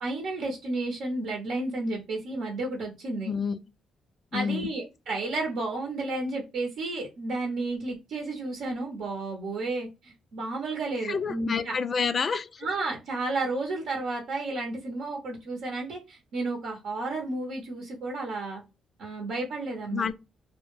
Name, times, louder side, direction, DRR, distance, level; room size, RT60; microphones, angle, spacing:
voice 1, 0.0-3.3 4.3-11.8 12.6-18.6 19.0-20.1, right 2 dB, 75° right, 0.8 m, -32 dB
voice 2, 3.3-3.6 4.3-4.7 11.0-12.5 19.9-20.1, left 5 dB, 40° left, 0.3 m, -28 dB
2.2 x 2.1 x 3.0 m
cardioid pair, 90°, 0 cm